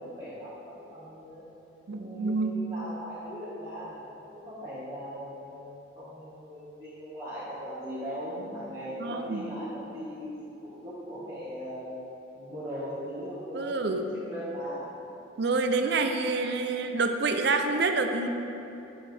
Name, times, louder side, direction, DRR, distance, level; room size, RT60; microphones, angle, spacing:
voice 1, 0.0-1.4 1.9-12.0 12.3-14.9, equal, 20° right, -14 dB, 1.7 m, -39 dB
voice 2, 1.9-2.5 9.0-9.4 13.5-14.0 15.4-18.3, right 3 dB, 60° right, 6 dB, 0.5 m, -27 dB
8.4 x 7.0 x 3.4 m, 2.9 s
head